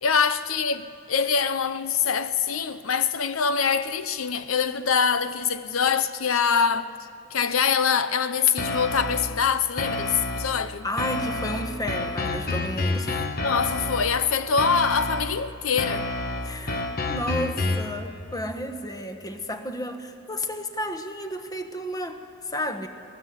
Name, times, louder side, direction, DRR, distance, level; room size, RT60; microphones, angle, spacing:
voice 1, 0.0-6.9 7.3-10.9 13.4-16.1, left 6 dB, 85° left, 0.7 m, -24 dB
sound 1, 8.6-9.4 9.8-10.6 11.0-14.2 14.6-15.4 15.8-18.0, left 2 dB, 50° left, 1.4 m, -29 dB
voice 2, 10.8-13.1 16.4-16.8 17.1-22.9, equal, 20° left, 1.3 m, -32 dB
21.5 x 19.5 x 8.2 m
head